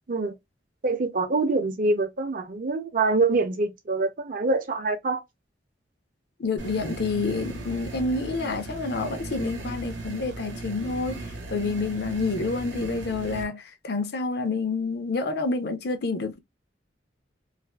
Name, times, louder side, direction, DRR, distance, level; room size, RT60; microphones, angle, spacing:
voice 1, 0.8-5.2, right 3 dB, 50° right, 0.6 m, -25 dB
voice 2, 6.4-16.4, left 3 dB, 60° left, 0.6 m, -28 dB
sound 1, 6.6-13.4, right 2 dB, 85° right, 0.8 m, -37 dB
2.4 x 2.4 x 2.2 m
head